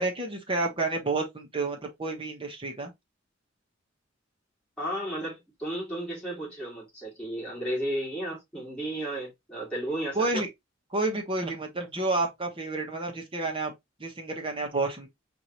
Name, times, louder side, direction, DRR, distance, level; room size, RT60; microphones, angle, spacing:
voice 1, 0.0-2.9 10.1-10.5 10.9-13.7 14.0-15.1, right 2 dB, 25° right, 1.1 m, -30 dB
voice 2, 4.8-10.4, right 1 dB, 5° left, 2.8 m, -33 dB
4.8 x 2.7 x 2.9 m
head